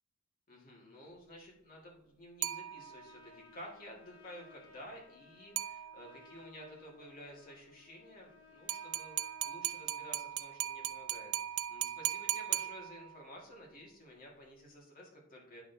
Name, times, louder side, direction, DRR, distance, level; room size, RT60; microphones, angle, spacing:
voice 1, 0.5-15.6, equal, 40° left, -2 dB, 1.9 m, -52 dB
sound 1, 2.4-3.2 5.6-6.3 8.7-13.3, right 13 dB, 70° right, 0.4 m, -38 dB
Trumpet, 2.5-10.1, left 5 dB, 55° left, 2.4 m, -60 dB
9.1 x 6.0 x 2.7 m, 0.74 s
head